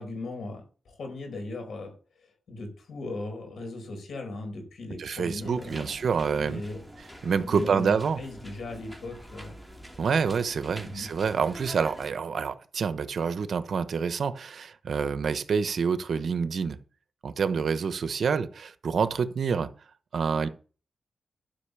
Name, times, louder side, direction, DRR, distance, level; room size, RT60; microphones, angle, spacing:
voice 1, 0.0-1.9 2.2-6.0 6.3-6.8 7.4-9.5 10.8-11.1, left 2 dB, 80° left, 4 dB, 4.8 m, -38 dB
voice 2, 5.0-6.6 7.2-8.2 10.0-16.8 17.2-19.7 20.1-20.5, right 6 dB, 70° right, 12 dB, 1.0 m, -27 dB
sound 1, 5.4-12.1, equal, ahead, 2.6 m, -46 dB
12.0 x 5.5 x 7.0 m, 0.38 s
cardioid pair, 90°, 0 cm